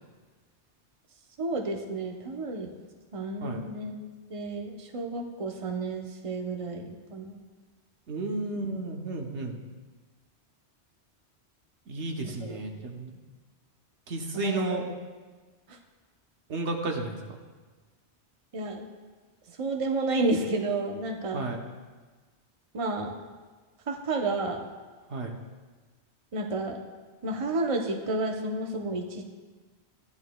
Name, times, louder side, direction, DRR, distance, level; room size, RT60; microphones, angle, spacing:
voice 1, 1.4-2.7 3.1-3.9 4.3-7.4 12.4-12.5 14.3-14.8 18.5-18.9 19.6-21.4 22.7-23.2 23.9-24.6 26.3-26.8 27.2-29.2, right 2 dB, 35° right, 2 dB, 0.8 m, -31 dB
voice 2, 8.1-9.6 11.9-13.2 14.1-14.9 16.5-17.4 21.3-21.6 25.1-25.4, right 2 dB, 85° right, 2 dB, 1.3 m, -33 dB
14.0 x 10.5 x 2.3 m, 1.3 s
omnidirectional pair, 1.1 m